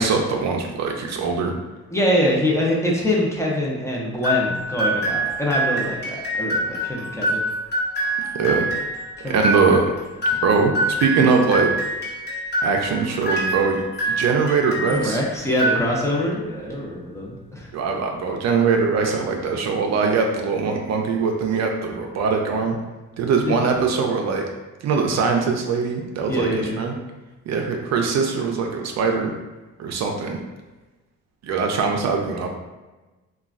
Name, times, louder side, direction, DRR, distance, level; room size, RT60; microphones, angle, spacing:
voice 1, 0.0-1.5 8.3-8.7 9.3-9.9 10.4-11.7 12.6-13.8 14.2-15.2 17.7-22.8 23.2-24.4 24.8-27.0 27.5-29.3 29.8-30.4 31.4-32.5, right 5 dB, 60° right, 2 dB, 0.5 m, -21 dB
voice 2, 1.9-7.4 9.2-9.5 14.9-17.7 23.5-23.6 26.3-26.8, left 1 dB, 10° left, -4 dB, 0.6 m, -24 dB
sound 1, 4.2-15.1 15.5-16.3, right 1 dB, 35° left, 0.9 m, -25 dB
3.0 x 2.3 x 2.4 m, 1.2 s
cardioid pair, 90°, 30 cm